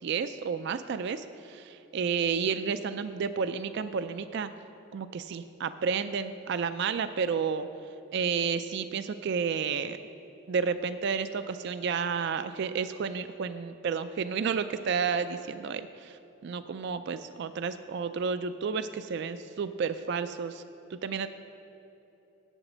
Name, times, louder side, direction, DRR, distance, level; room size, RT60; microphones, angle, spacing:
voice 1, 0.0-4.5 4.9-7.7 8.1-10.0 10.5-16.2 16.4-20.6 20.9-21.3, right 6 dB, 50° right, 11 dB, 0.3 m, -31 dB
8.2 x 8.1 x 7.1 m, 3.0 s
head